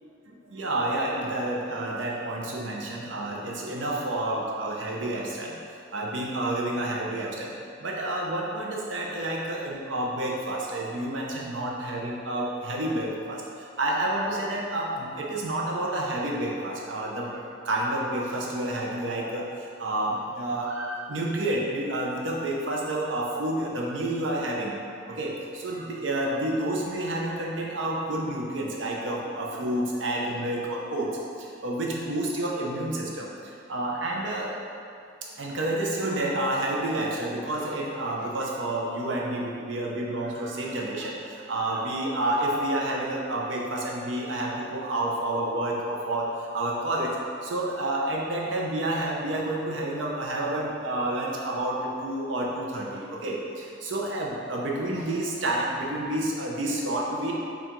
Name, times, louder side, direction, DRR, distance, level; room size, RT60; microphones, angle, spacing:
voice 1, 0.5-5.5 5.9-7.5 7.8-13.4 13.8-17.3 17.7-19.4 19.8-24.7 25.1-25.3 25.6-31.1 31.6-33.3 33.7-34.5 35.4-41.1 41.5-46.3 46.5-47.1 47.4-53.4 53.8-57.3, right 1 dB, 85° right, -2 dB, 0.6 m, -29 dB
4.4 x 2.4 x 3.8 m, 2.5 s
head